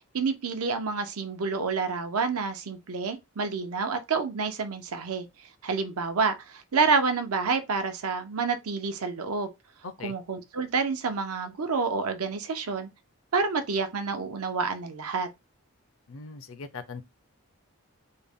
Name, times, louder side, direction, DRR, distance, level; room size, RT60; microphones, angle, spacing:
voice 1, 0.1-5.3 5.6-9.5 10.0-12.9 13.3-15.3, right 4 dB, 80° right, 0.7 m, -28 dB
voice 2, 9.8-10.1 16.1-17.0, left 4 dB, 65° left, 0.5 m, -40 dB
3.6 x 2.2 x 3.5 m
head